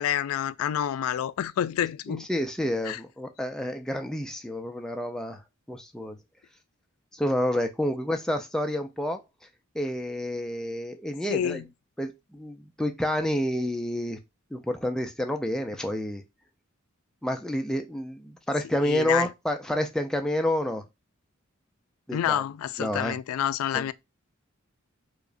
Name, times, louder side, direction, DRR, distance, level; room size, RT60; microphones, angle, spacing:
voice 1, 0.0-2.3 2.8-3.0 11.3-11.6 18.8-19.3 22.1-23.9, left 10 dB, 80° left, 0.3 m, -28 dB
voice 2, 2.1-5.4 5.7-6.2 7.1-9.2 9.7-11.6 12.0-14.2 14.5-16.2 17.2-20.8 22.1-22.4 22.8-23.2 23.7-23.9, left 1 dB, 5° left, 0.3 m, -29 dB
4.8 x 2.1 x 2.5 m
head